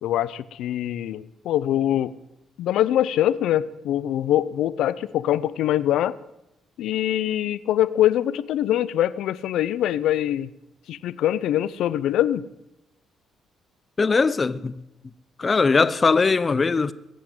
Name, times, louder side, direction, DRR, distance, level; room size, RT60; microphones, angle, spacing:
voice 1, 0.0-2.1 2.6-6.2 6.8-10.5 10.9-12.4, left 12 dB, 85° left, 0.7 m, -23 dB
voice 2, 14.0-14.8 15.4-16.9, left 4 dB, 30° left, 0.8 m, -20 dB
22.0 x 8.5 x 7.8 m
cardioid pair, 90°, 0 cm